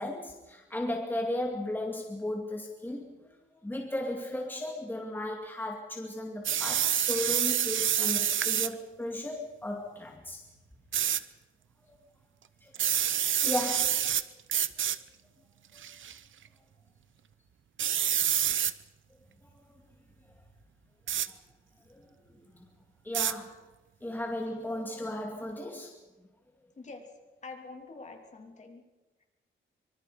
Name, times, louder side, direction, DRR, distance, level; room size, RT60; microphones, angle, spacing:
voice 1, 0.0-3.0 3.3-10.4 12.6-12.7 13.4-14.1 15.7-15.8 21.9-22.6 23.0-23.6 24.0-26.0, left 1 dB, 10° left, 1 dB, 2.4 m, -35 dB
sound 1, 6.4-8.7 10.9-11.2 12.7-14.2 14.5-15.0 15.8-16.1 17.8-18.7 21.1-21.3 23.1-23.3, right 10 dB, 70° right, 0.8 m, -27 dB
voice 2, 26.8-27.1 27.4-28.8 29.2-29.3, left 3 dB, 35° left, 2 dB, 3.1 m, -46 dB
25.0 x 24.0 x 5.0 m, 1.1 s
wide cardioid pair, 160°, 21 cm